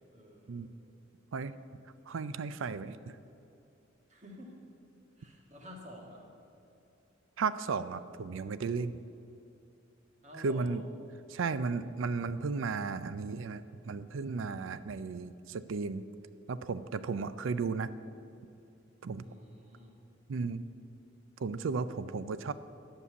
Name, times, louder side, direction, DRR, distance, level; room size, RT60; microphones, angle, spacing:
voice 1, 0.1-0.7 4.1-4.6 5.2-6.3 10.2-10.8 19.2-19.9, equal, 35° right, 0 dB, 1.8 m, -50 dB
voice 2, 2.1-3.1 7.4-9.0 10.4-10.8 11.3-16.0 16.5-17.9 19.0-19.2 20.3-20.6 21.4-22.5, right 4 dB, 75° right, 14 dB, 0.4 m, -34 dB
11.0 x 5.5 x 8.1 m, 2.8 s
head